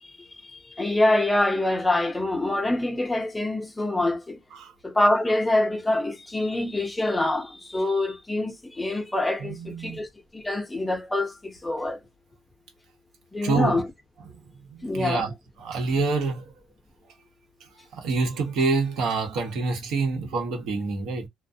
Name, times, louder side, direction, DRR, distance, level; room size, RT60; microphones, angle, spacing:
voice 1, 0.0-4.4 4.8-10.1 10.3-12.0 13.3-13.9 14.8-15.3, left 2 dB, 15° left, 0.6 m, -25 dB
voice 2, 9.4-10.0 13.4-13.8 14.7-15.3 15.6-16.4 17.9-21.3, right 4 dB, 85° right, 0.9 m, -26 dB
2.3 x 2.1 x 2.6 m
cardioid pair, 110°, 0 cm